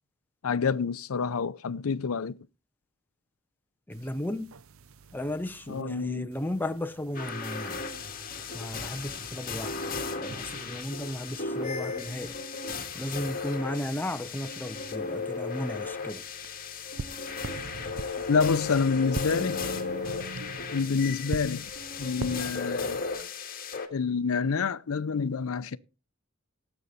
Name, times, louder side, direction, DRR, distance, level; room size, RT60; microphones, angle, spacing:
voice 1, 0.4-2.4 5.7-6.3 18.3-19.6 20.7-21.7 22.0-23.0 23.9-25.8, left 5 dB, 80° left, 0.6 m, -27 dB
voice 2, 3.9-4.5 5.1-7.8 8.5-9.7 10.2-12.4 12.9-16.2, left 1 dB, 10° left, 0.8 m, -34 dB
sound 1, 3.9-5.8 6.3-9.8 10.3-12.3 12.8-18.5 19.0-22.4, right 3 dB, 75° right, 0.7 m, -44 dB
sound 2, 7.1-23.9, left 4 dB, 45° left, 2.0 m, -35 dB
17.5 x 8.1 x 4.2 m
head